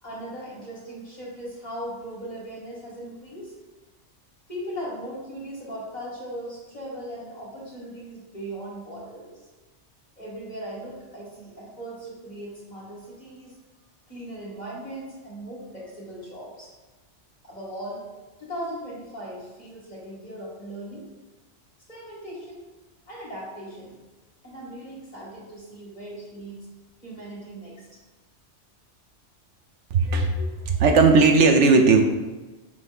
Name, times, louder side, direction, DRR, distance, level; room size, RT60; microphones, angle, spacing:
voice 1, 0.0-3.5 4.5-9.3 10.2-13.6 14.1-16.7 17.4-18.0 18.4-21.1 21.9-22.6 23.1-23.9 24.4-26.6 27.0-27.9, right 1 dB, 35° left, -7 dB, 2.5 m, -38 dB
voice 2, 29.9-32.2, right 4 dB, 75° right, 5 dB, 1.0 m, -17 dB
6.4 x 3.5 x 5.3 m, 1.2 s
omnidirectional pair, 1.3 m